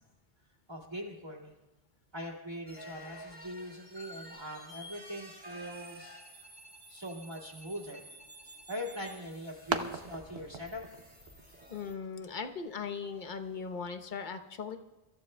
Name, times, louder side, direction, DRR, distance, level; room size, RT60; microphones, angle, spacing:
voice 1, 0.7-1.5 2.1-6.2 6.9-10.8, equal, 25° right, -4 dB, 2.3 m, -42 dB
sound 1, 2.7-11.9, equal, 10° right, 2.5 m, -51 dB
sound 2, 8.8-13.9, right 5 dB, 75° right, 1.1 m, -42 dB
voice 2, 11.7-14.8, left 5 dB, 50° left, 7 dB, 1.0 m, -39 dB
29.0 x 14.5 x 2.2 m, 1.1 s
omnidirectional pair, 1.1 m